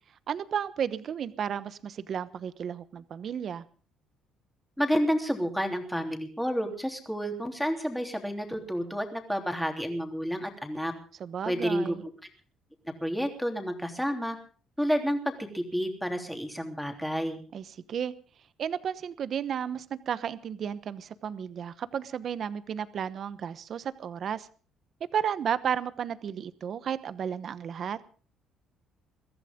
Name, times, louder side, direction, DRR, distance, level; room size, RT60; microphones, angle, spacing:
voice 1, 0.3-3.6 11.2-12.0 17.5-18.1 18.6-24.5 25.1-28.0, right 8 dB, 45° right, 15 dB, 1.0 m, -33 dB
voice 2, 4.8-10.9 11.4-11.9 13.0-14.4 14.8-15.2 15.5-17.4, equal, ahead, 4 dB, 3.2 m, -30 dB
23.0 x 15.0 x 3.7 m, 0.40 s
cardioid pair, 145°, 0 cm